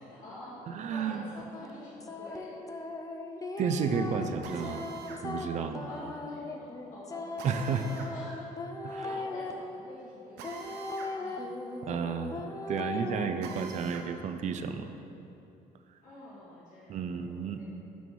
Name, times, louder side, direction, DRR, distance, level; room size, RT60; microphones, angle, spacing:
voice 1, 0.0-0.6 0.9-2.6 5.8-8.5 8.8-11.5 16.0-17.7, left 1 dB, 50° left, -8 dB, 1.5 m, -48 dB
voice 2, 0.8-1.2 3.6-4.9 5.2-5.9 7.4-7.9 8.8-9.0 11.8-14.9 16.9-17.6, right 6 dB, 45° right, 8 dB, 0.4 m, -32 dB
sound 1, 1.3-9.5 10.4-13.3, left 2 dB, 20° left, 0.5 m, -38 dB
Drill, 4.4-5.2 7.4-8.1 10.4-11.1 11.5-11.6 13.4-14.1, right 6 dB, 80° right, 0.8 m, -45 dB
6.1 x 5.4 x 4.7 m, 2.8 s
cardioid pair, 110°, 17 cm